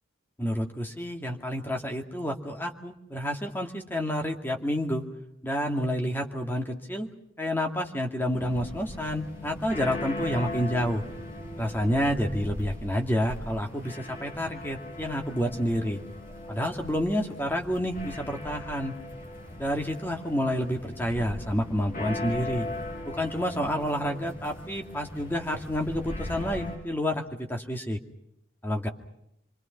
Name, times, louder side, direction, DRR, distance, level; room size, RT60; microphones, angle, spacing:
voice 1, 0.4-5.0 5.4-7.1 7.4-11.0 11.6-16.0 16.5-18.9 19.6-22.7 23.1-28.0 28.6-28.9, equal, 10° left, 2 dB, 2.4 m, -29 dB
sound 1, 8.3-26.8, left 1 dB, 40° left, 7.6 m, -39 dB
28.5 x 24.5 x 6.0 m, 0.79 s
head